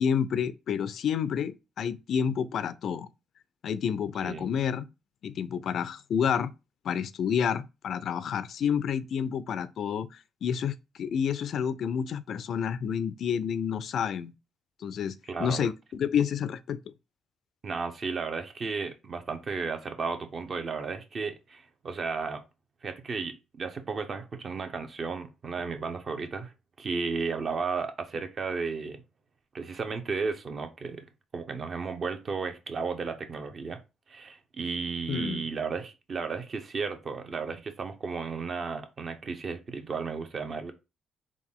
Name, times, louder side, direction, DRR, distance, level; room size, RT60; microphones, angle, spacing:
voice 1, 0.0-3.1 3.6-4.9 5.2-6.5 6.8-10.1 10.4-14.3 14.8-16.8 35.1-35.4, left 7 dB, 65° left, 0.3 m, -29 dB
voice 2, 15.3-15.6 17.6-22.4 22.8-26.5 26.8-29.0 29.5-31.0 31.3-33.8 34.1-40.7, right 4 dB, 45° right, 0.8 m, -34 dB
3.8 x 2.4 x 3.6 m
cardioid pair, 90°, 0 cm